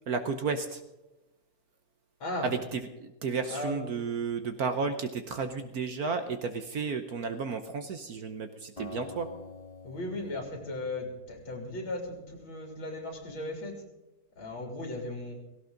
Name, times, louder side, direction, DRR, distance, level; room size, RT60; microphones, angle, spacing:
voice 1, 0.1-0.8 2.4-9.3, right 5 dB, 55° right, 8 dB, 1.2 m, -32 dB
voice 2, 2.2-2.5 3.5-3.9 9.8-13.8 14.4-15.3, left 2 dB, 75° left, 2 dB, 4.1 m, -37 dB
Acoustic guitar, 8.8-11.9, left 2 dB, 20° left, 1.2 m, -47 dB
17.0 x 17.0 x 3.9 m, 0.99 s
omnidirectional pair, 2.2 m